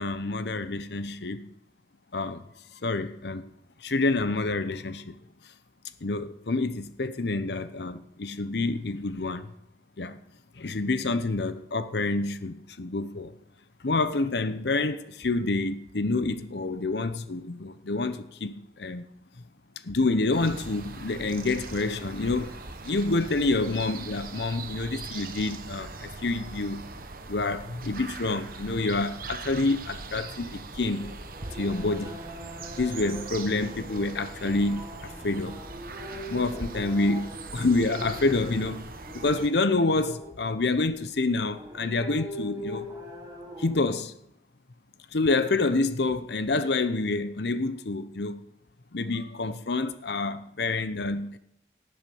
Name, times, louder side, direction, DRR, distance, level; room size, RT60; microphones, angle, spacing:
voice 1, 0.0-1.5 2.1-2.4 2.7-3.5 3.8-5.2 6.0-9.5 10.0-10.2 10.6-13.3 13.8-19.1 19.8-26.9 27.3-31.1 31.5-32.2 32.8-35.6 36.3-38.8 39.1-42.9 43.6-44.1 45.1-48.4 48.9-51.4, left 3 dB, 70° left, 0.8 m, -28 dB
sound 1, 20.3-39.5, right 3 dB, 50° right, 1.2 m, -41 dB
sound 2, 30.1-44.0, equal, 20° right, 3.5 m, -42 dB
19.0 x 7.7 x 7.0 m
head